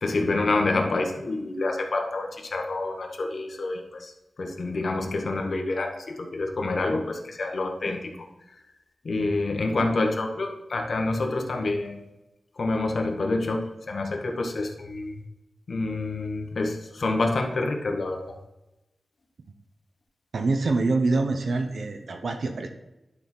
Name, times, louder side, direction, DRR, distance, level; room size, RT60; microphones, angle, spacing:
voice 1, 0.0-8.1 8.5-8.6 9.0-12.0 12.6-15.2 15.7-18.4, left 2 dB, 65° left, 3 dB, 1.2 m, -27 dB
voice 2, 20.3-22.7, right 3 dB, 75° right, 5 dB, 0.8 m, -25 dB
11.0 x 4.2 x 4.4 m, 0.97 s
wide cardioid pair, 75°, 0 cm